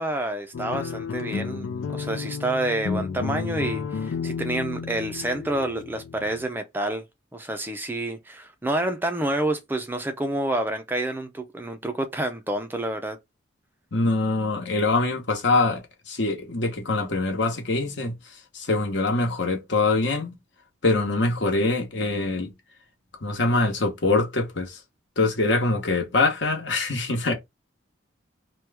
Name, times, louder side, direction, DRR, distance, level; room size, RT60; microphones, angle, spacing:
voice 1, 0.0-1.7 1.9-7.0 7.3-13.2, right 1 dB, 10° right, 0.4 m, -28 dB
sound 1, 0.5-6.4, left 5 dB, 90° left, 0.4 m, -32 dB
voice 2, 13.9-18.2 18.5-20.3 20.8-22.5 23.2-24.8 25.2-27.3, left 2 dB, 65° left, 1.0 m, -24 dB
3.0 x 2.2 x 3.3 m
head